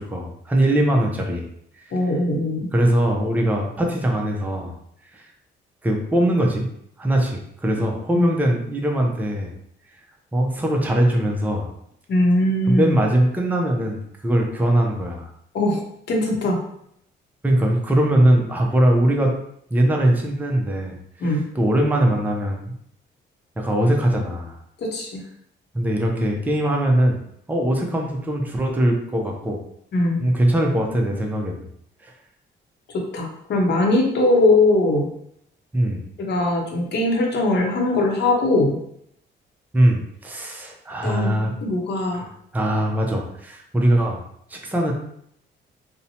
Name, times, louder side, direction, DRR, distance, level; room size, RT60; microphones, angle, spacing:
voice 1, 0.0-1.4 2.7-4.7 5.1-5.3 5.8-6.7 7.0-9.5 10.3-11.7 12.7-15.3 17.4-19.3 19.7-21.0 21.3-22.7 23.6-24.6 25.7-27.2 27.5-29.6 30.2-31.6 32.0-32.1 35.7-36.0 39.7-41.5 42.1-44.2 44.5-44.9, right 1 dB, 10° right, 0 dB, 0.5 m, -21 dB
voice 2, 1.9-2.7 8.1-8.3 12.1-13.0 15.5-15.8 16.1-16.6 21.2-21.4 24.8-25.2 29.9-30.2 33.1-35.1 36.2-38.8 41.0-42.2, left 2 dB, 60° left, 1 dB, 0.7 m, -20 dB
2.7 x 2.1 x 2.7 m, 0.72 s
cardioid pair, 90°, 20 cm